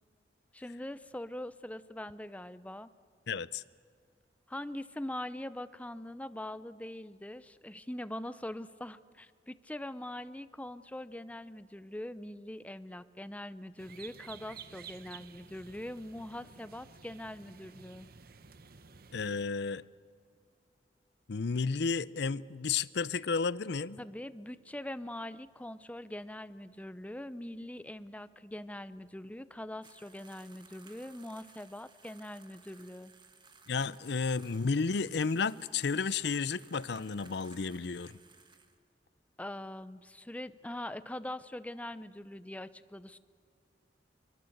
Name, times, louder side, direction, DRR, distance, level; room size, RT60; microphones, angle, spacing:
voice 1, 0.5-2.9 4.5-18.1 24.0-33.1 39.4-43.2, left 1 dB, 10° left, 0.7 m, -42 dB
voice 2, 3.3-3.6 19.1-19.8 21.3-24.0 33.7-38.2, left 5 dB, 70° left, 0.6 m, -32 dB
sound 1, 13.8-19.5, right 6 dB, 60° right, 0.9 m, -52 dB
sound 2, 29.8-38.8, right 4 dB, 25° right, 1.6 m, -59 dB
25.5 x 24.0 x 8.0 m
head